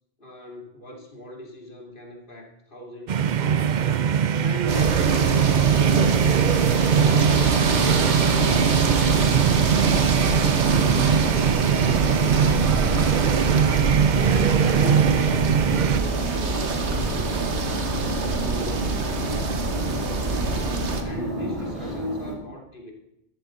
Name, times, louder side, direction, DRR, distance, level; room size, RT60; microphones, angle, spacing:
voice 1, 0.2-3.9 4.4-6.5 7.0-10.6 11.1-13.6 14.3-17.4 18.0-19.4 20.0-22.9, equal, 45° left, -1 dB, 2.9 m, -38 dB
sound 1, 3.1-16.0, right 8 dB, 50° right, 0.6 m, -21 dB
sound 2, 4.7-21.0, right 4 dB, 65° right, 1.5 m, -25 dB
sound 3, 6.8-22.3, equal, 25° right, 3.8 m, -31 dB
13.0 x 12.5 x 3.9 m, 0.83 s
omnidirectional pair, 1.2 m